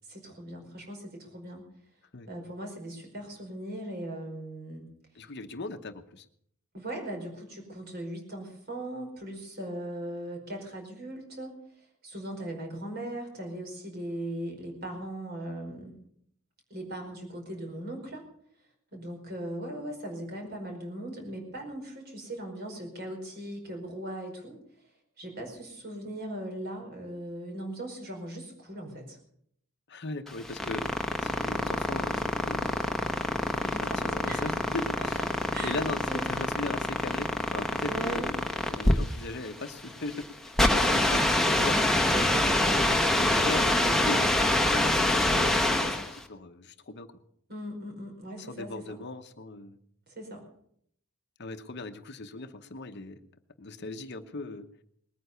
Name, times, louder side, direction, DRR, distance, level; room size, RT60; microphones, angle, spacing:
voice 1, 0.1-1.7 2.3-4.8 6.7-16.0 16.7-18.3 18.9-24.6 25.2-29.2 33.6-34.5 35.0-35.1 35.5-35.8 36.0-36.3 37.9-38.3 40.7-41.0 42.1-43.4 47.5-49.0 50.1-50.4, right 1 dB, 45° right, 2 dB, 5.0 m, -39 dB
voice 2, 5.1-6.3 29.9-30.8 31.2-32.7 33.5-35.3 35.6-40.3 40.8-41.8 43.1-47.1 48.4-49.8 51.4-53.2 53.6-54.7, left 2 dB, 50° left, 9 dB, 0.9 m, -39 dB
sound 1, 30.3-46.2, left 1 dB, ahead, 1.1 m, -26 dB
20.0 x 9.4 x 6.8 m, 0.68 s
head